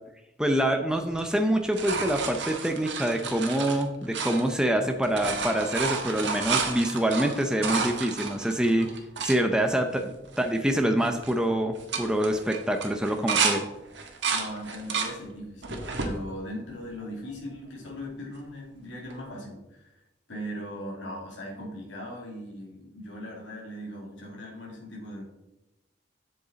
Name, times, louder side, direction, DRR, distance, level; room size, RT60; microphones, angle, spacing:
voice 1, 0.4-8.9 9.2-13.7, right 1 dB, 5° right, 4 dB, 0.6 m, -26 dB
sound 1, 1.1-4.8 5.0-9.4 10.0-10.1 10.3-10.7 11.0-11.3 11.7-13.6 13.9-15.1 15.6-16.1 16.8-17.5 19.1-19.2, right 5 dB, 70° right, 1.6 m, -31 dB
voice 2, 14.3-20.0 20.3-25.2, equal, 90° left, -2 dB, 2.6 m, -39 dB
8.2 x 8.0 x 4.0 m, 0.94 s
head